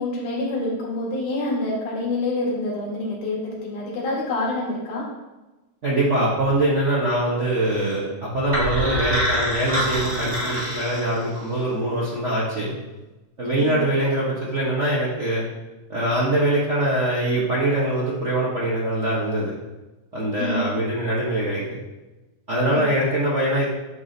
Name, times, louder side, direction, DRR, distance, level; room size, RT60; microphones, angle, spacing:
voice 1, 0.0-5.1 13.4-13.7 20.4-20.6 22.7-22.8, left 2 dB, 85° left, -4 dB, 3.4 m, -27 dB
voice 2, 5.8-12.7 13.4-15.4 15.9-19.5 20.1-21.6 22.5-23.6, right 1 dB, 75° right, -7 dB, 0.6 m, -23 dB
sound 1, 8.5-11.5, equal, 15° right, 1.6 m, -25 dB
10.0 x 5.9 x 2.8 m, 1.1 s
omnidirectional pair, 3.5 m